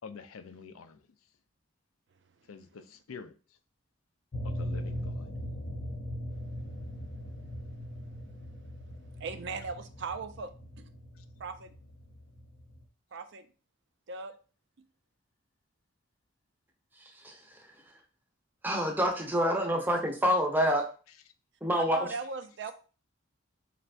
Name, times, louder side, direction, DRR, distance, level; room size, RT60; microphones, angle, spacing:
voice 1, 0.0-1.0 2.5-3.3 4.4-5.1, left 5 dB, 90° left, 0.5 m, -46 dB
sound 1, 4.3-12.8, equal, 45° left, 0.6 m, -40 dB
voice 2, 9.2-10.5 10.8-10.9 11.4-11.7 13.1-13.5 14.1-14.3 21.7-22.7, right 4 dB, 60° right, 0.5 m, -38 dB
voice 3, 17.2-17.6 18.6-20.9 21.6-22.1, equal, 10° right, 0.7 m, -27 dB
4.4 x 3.3 x 2.5 m
head